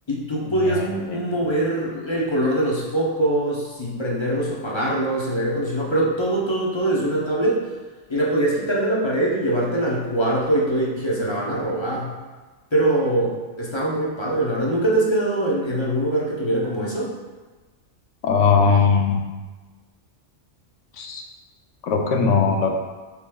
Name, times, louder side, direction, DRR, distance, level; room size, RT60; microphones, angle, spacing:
voice 1, 0.1-7.6 8.1-12.1 12.7-17.1, right 1 dB, 30° left, -4 dB, 0.7 m, -23 dB
voice 2, 0.6-1.2 18.2-19.2 21.0-21.2 21.8-22.7, left 5 dB, 90° left, 2 dB, 1.0 m, -19 dB
6.8 x 3.1 x 2.3 m, 1.3 s
omnidirectional pair, 1.3 m